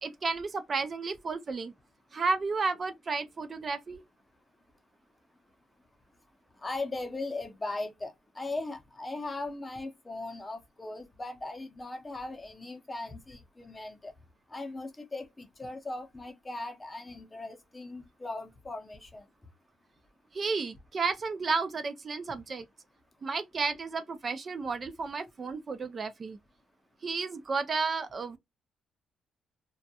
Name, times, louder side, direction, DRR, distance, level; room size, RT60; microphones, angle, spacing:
voice 1, 0.0-1.7 2.1-4.0 20.3-22.7 23.2-26.4 27.0-28.4, right 4 dB, 40° right, 0.3 m, -32 dB
voice 2, 6.6-14.1 14.5-19.3, left 2 dB, 20° left, 0.6 m, -38 dB
2.2 x 2.1 x 2.7 m
cardioid pair, 105°, 0 cm